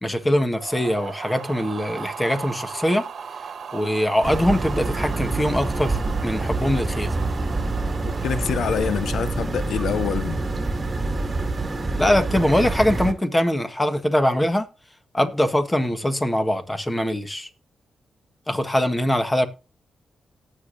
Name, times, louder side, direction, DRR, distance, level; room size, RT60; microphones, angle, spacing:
voice 1, 0.0-3.0 3.7-7.1 12.0-14.7 15.1-17.5 18.5-19.5, left 1 dB, 15° left, 1.5 m, -22 dB
sound 1, 0.6-9.7, right 6 dB, 65° right, 1.3 m, -37 dB
sound 2, 4.2-13.1, right 3 dB, 25° right, 2.1 m, -26 dB
voice 2, 8.2-10.4, left 8 dB, 75° left, 0.6 m, -25 dB
17.5 x 6.7 x 2.6 m
cardioid pair, 100°, 0 cm